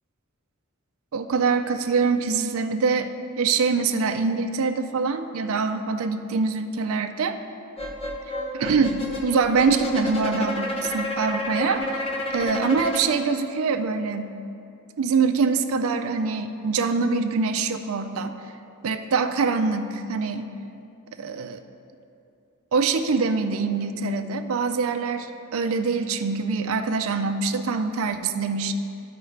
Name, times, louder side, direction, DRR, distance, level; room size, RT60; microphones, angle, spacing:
voice 1, 1.1-3.1 3.4-7.4 8.5-11.8 12.3-14.4 15.0-18.4 18.8-20.5 21.2-21.6 22.7-28.7, right 4 dB, 70° right, 7 dB, 0.4 m, -24 dB
sound 1, 7.8-13.0, left 1 dB, 25° left, 0.8 m, -30 dB
14.0 x 4.7 x 3.3 m, 2.6 s
head